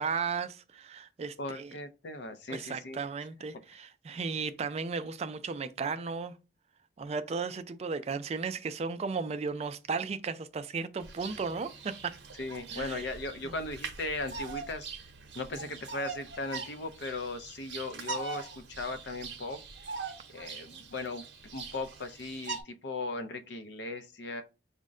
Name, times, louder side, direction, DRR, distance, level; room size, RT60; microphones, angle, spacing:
voice 1, 0.0-1.7 2.5-6.3 7.0-12.1 12.7-13.0 13.4-13.5, right 5 dB, 35° right, 0.3 m, -35 dB
voice 2, 1.4-3.0 12.4-14.9 15.3-19.6 20.3-24.4, left 2 dB, 65° left, 0.5 m, -38 dB
Bird vocalization bird call bird song, 11.0-22.6, right 4 dB, 65° right, 0.7 m, -42 dB
5.1 x 2.1 x 3.6 m
head